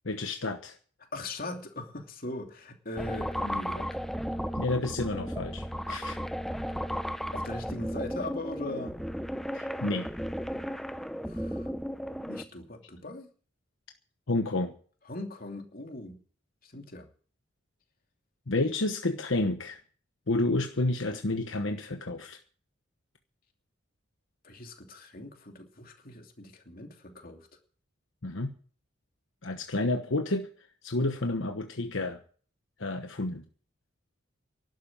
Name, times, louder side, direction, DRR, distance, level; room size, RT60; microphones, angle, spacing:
voice 1, 0.0-0.8 4.5-6.2 9.5-10.1 14.3-14.7 18.5-19.8 20.3-22.4 28.2-28.5 29.4-32.2 32.8-33.4, left 2 dB, 75° left, 6 dB, 1.2 m, -30 dB
voice 2, 1.1-4.0 5.9-6.1 7.3-8.9 11.3-11.7 12.3-13.3 15.1-16.2 16.6-17.1 24.4-27.5, left 2 dB, 45° left, 4 dB, 2.8 m, -40 dB
sound 1, 3.0-12.4, equal, ahead, 0.7 m, -34 dB
12.0 x 9.7 x 8.8 m, 0.43 s
head